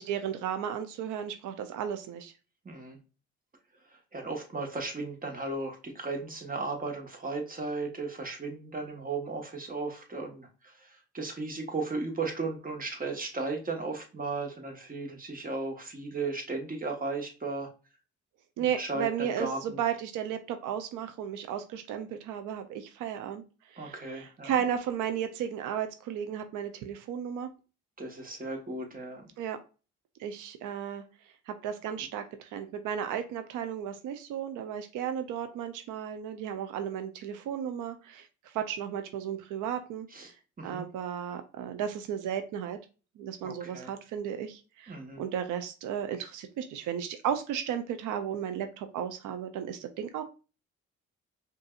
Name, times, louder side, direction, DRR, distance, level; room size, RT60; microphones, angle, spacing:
voice 1, 0.0-2.3 18.6-23.4 23.7-27.5 29.4-29.6 30.2-31.0 31.5-40.3 40.6-42.8 43.2-50.2, right 9 dB, 85° right, 8 dB, 0.6 m, -34 dB
voice 2, 2.6-3.0 3.9-17.7 18.6-19.8 23.8-24.5 28.0-29.3 40.1-40.8 43.4-43.9 44.9-45.2, right 3 dB, 30° right, 2 dB, 1.3 m, -36 dB
5.3 x 2.6 x 2.4 m, 0.33 s
cardioid pair, 90°, 30 cm